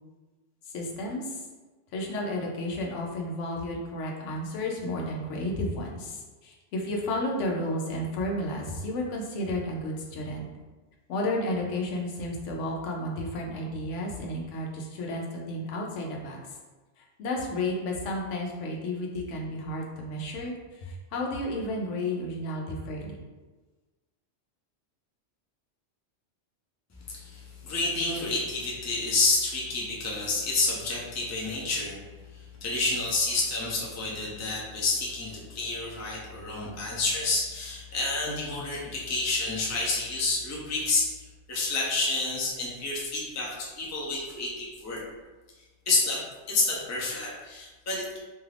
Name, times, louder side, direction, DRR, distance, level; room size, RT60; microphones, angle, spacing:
voice 1, 0.7-1.4 1.9-10.5 11.1-16.6 17.0-23.2, left 1 dB, 85° left, 0 dB, 0.9 m, -32 dB
voice 2, 27.1-32.0 32.6-41.1 41.5-45.0 45.9-46.2 46.5-48.2, left 3 dB, 25° left, -4 dB, 0.4 m, -29 dB
2.7 x 2.4 x 3.3 m, 1.2 s
omnidirectional pair, 1.2 m